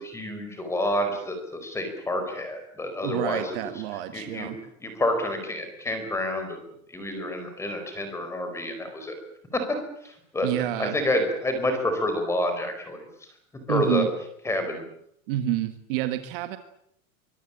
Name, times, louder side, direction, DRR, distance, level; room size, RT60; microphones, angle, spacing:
voice 1, 0.0-3.7 4.1-4.5 4.8-6.6 6.9-9.2 9.5-9.6 10.0-10.5 10.8-13.1 13.7-14.0 14.4-14.8, left 1 dB, 5° left, 7 dB, 4.7 m, -28 dB
voice 2, 3.0-4.6 10.4-11.0 13.7-14.1 15.3-16.6, right 14 dB, 40° right, 9 dB, 1.7 m, -28 dB
24.0 x 22.5 x 8.8 m, 0.73 s
supercardioid pair, 180°, 41 cm